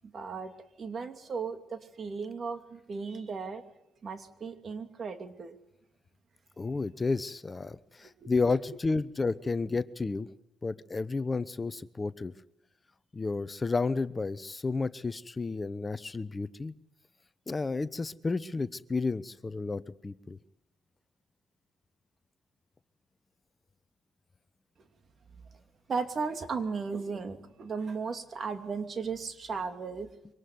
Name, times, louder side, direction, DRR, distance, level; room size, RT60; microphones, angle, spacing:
voice 1, 0.0-0.5 0.8-3.6 4.0-5.6 8.0-8.6 25.9-30.1, right 5 dB, 45° right, 8 dB, 2.8 m, -36 dB
voice 2, 6.6-10.3 10.6-12.3 13.1-16.7 17.5-20.4, left 3 dB, 25° left, 15 dB, 0.9 m, -31 dB
24.5 x 19.0 x 9.5 m, 0.82 s
cardioid pair, 90°, 0 cm